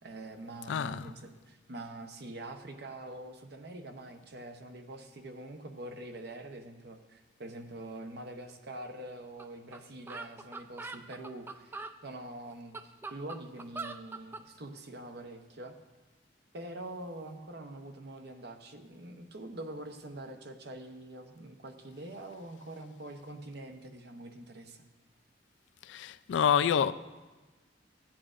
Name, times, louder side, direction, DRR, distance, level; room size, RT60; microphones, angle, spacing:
voice 1, 0.0-15.7 16.5-24.8, right 1 dB, 65° right, 0.8 m, -45 dB
voice 2, 0.7-1.1 25.8-26.9, left 8 dB, 85° left, 0.3 m, -27 dB
sound 1, 9.4-9.5 9.7-9.8 10.1-12.0 12.5-14.5, right 3 dB, 10° right, 0.3 m, -42 dB
14.5 x 8.6 x 2.5 m
head